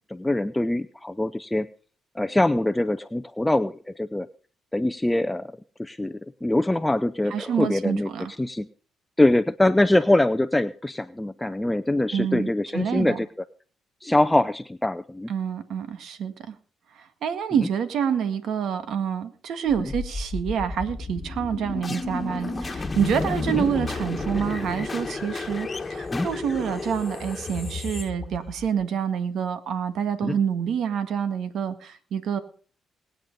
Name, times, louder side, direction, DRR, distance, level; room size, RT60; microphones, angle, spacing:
voice 1, 0.0-1.7 2.2-4.3 4.7-8.1 8.4-8.7 9.2-13.3 14.0-15.3 17.6-17.7 19.8-19.9 23.5-23.6 26.1-26.3 30.2-30.4, left 1 dB, 10° left, 11 dB, 0.6 m, -23 dB
voice 2, 7.3-8.3 12.1-13.2 15.3-16.5 17.0-32.4, right 8 dB, 70° right, 10 dB, 1.8 m, -27 dB
sound 1, 19.7-28.8, left 3 dB, 25° left, 1.7 m, -32 dB
19.5 x 9.2 x 5.4 m, 0.42 s
cardioid pair, 90°, 0 cm